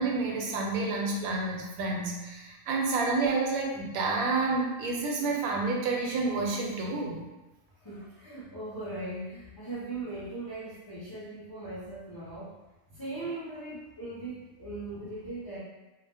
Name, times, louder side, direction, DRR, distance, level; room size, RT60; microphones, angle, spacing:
voice 1, 0.0-7.2, right 3 dB, 90° right, 0 dB, 1.1 m, -29 dB
voice 2, 7.7-12.5 12.9-15.6, right 2 dB, 40° left, -9 dB, 0.3 m, -39 dB
2.4 x 2.1 x 3.3 m, 1.1 s
omnidirectional pair, 1.4 m